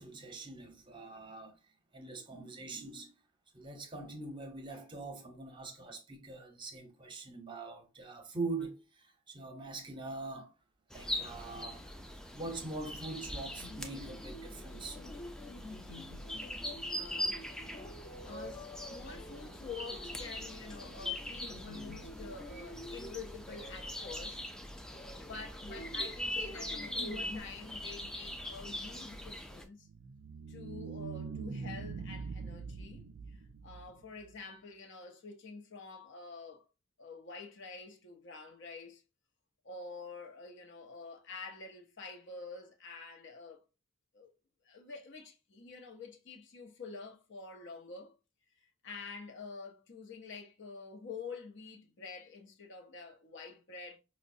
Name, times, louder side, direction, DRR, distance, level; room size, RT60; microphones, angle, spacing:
voice 1, 0.0-1.5 1.9-3.1 3.5-8.8 9.3-10.5 10.9-12.0 12.3-15.0, right 3 dB, 25° right, 0.7 m, -43 dB
sound 1, 10.9-29.6, left 1 dB, 5° left, 0.3 m, -42 dB
sound 2, 13.6-27.4, left 1 dB, 20° left, 0.8 m, -49 dB
voice 2, 17.0-17.8 18.2-24.4 24.9-29.9 30.5-33.1 33.6-36.6 37.0-39.0 39.6-43.6 44.1-44.3 44.6-48.1 48.8-54.0, left 4 dB, 60° left, 0.7 m, -47 dB
sound 3, 29.8-34.3, right 5 dB, 65° right, 0.4 m, -43 dB
5.0 x 2.1 x 2.6 m
head